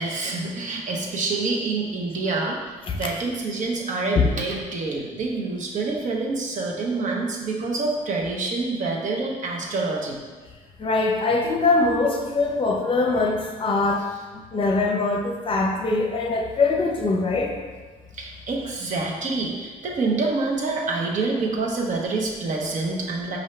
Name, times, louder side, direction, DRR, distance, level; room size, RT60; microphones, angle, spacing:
voice 1, 0.0-10.2 18.2-23.4, right 3 dB, 55° right, 0 dB, 0.9 m, -27 dB
voice 2, 10.8-14.0 14.5-17.5, left 3 dB, 35° left, 2 dB, 0.7 m, -22 dB
5.4 x 2.7 x 3.2 m, 1.4 s
cardioid pair, 80°, 16 cm